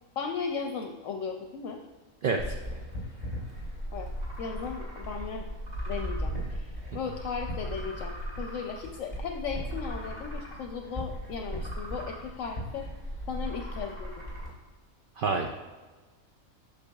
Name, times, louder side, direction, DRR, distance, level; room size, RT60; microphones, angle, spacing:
voice 1, 0.2-1.8 3.9-4.1 4.4-5.5 5.9-6.3 6.9-12.8 13.3-14.1, left 6 dB, 70° left, 4 dB, 0.9 m, -36 dB
voice 2, 2.2-2.5 15.2-15.5, right 4 dB, 75° right, 3 dB, 0.4 m, -27 dB
sound 1, 2.4-14.5, equal, 30° right, 2.0 m, -37 dB
8.1 x 6.4 x 2.3 m, 1.3 s
omnidirectional pair, 1.4 m